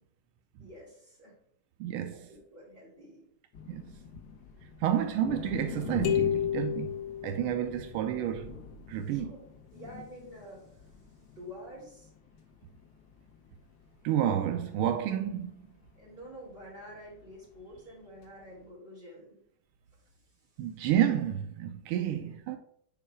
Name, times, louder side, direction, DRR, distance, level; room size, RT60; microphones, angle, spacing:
voice 1, 0.6-1.3 2.1-3.2 8.8-9.4 9.7-11.0 11.3-12.1 16.0-19.4 22.1-22.3, equal, 25° right, 3.0 m, -48 dB
voice 2, 1.8-2.3 3.7-3.9 4.8-8.5 8.9-9.3 14.0-15.5 20.6-22.6, right 10 dB, 85° right, 1.5 m, -30 dB
sound 1, 3.5-18.7, left 7 dB, 65° left, 1.6 m, -46 dB
sound 2, 6.0-7.9, left 11 dB, 85° left, 2.0 m, -31 dB
5.7 x 4.6 x 4.8 m
omnidirectional pair, 2.3 m